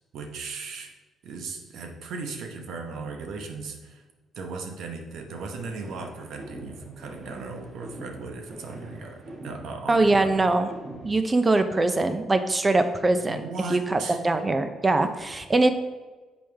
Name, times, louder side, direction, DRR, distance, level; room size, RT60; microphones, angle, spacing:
voice 1, 0.1-0.9 1.2-4.0 4.3-10.5 13.2-14.2, right 4 dB, 80° right, 3 dB, 1.0 m, -37 dB
sound 1, 5.3-11.3, right 1 dB, 50° right, 1.7 m, -43 dB
voice 2, 9.9-10.7 11.0-13.4 13.7-15.7, right 2 dB, 25° right, 8 dB, 0.6 m, -22 dB
7.2 x 5.1 x 3.4 m, 1.2 s
cardioid pair, 90°, 0 cm